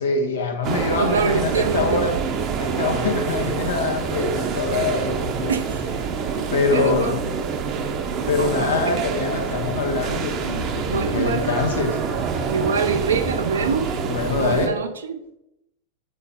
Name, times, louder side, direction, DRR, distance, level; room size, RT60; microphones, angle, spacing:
voice 1, 0.0-2.1 2.6-5.5 6.5-7.2 8.3-12.0 14.1-14.8, left 4 dB, 65° left, 3 dB, 1.3 m, -24 dB
sound 1, 0.6-14.7, right 6 dB, 35° right, 0.9 m, -26 dB
voice 2, 0.9-2.2 5.5-5.9 6.4-7.2 8.4-9.0 10.9-11.5 12.5-14.0 14.3-15.2, right 6 dB, 70° right, 7 dB, 0.7 m, -25 dB
7.9 x 3.9 x 4.3 m, 0.85 s
figure-of-eight pair, 90°, 0 cm